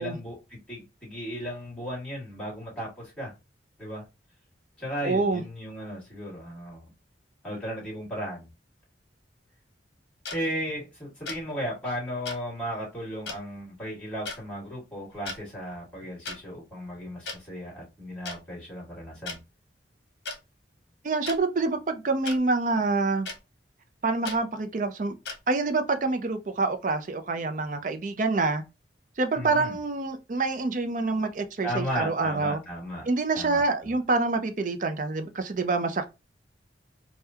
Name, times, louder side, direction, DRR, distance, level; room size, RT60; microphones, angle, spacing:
voice 1, 0.0-3.3 3.8-4.0 4.8-6.9 7.4-8.5 10.3-19.4 29.3-29.8 31.6-33.0 33.4-34.0, equal, 5° left, 2.0 m, -35 dB
voice 2, 5.0-5.4 21.0-23.3 24.0-25.1 25.5-28.6 29.2-32.6 33.1-36.1, right 3 dB, 45° right, 0.5 m, -26 dB
sound 1, 10.2-10.4 11.3-11.4 12.2-12.4 13.3-13.4 14.2-14.4 15.1-15.4 16.2-16.4 17.3-17.4 18.2-18.4 19.3-19.4 20.2-20.4 21.2-21.4 22.2-22.4 23.2-23.4 24.2-24.4 25.2-25.4, left 3 dB, 75° left, 0.9 m, -35 dB
3.5 x 2.2 x 2.7 m
head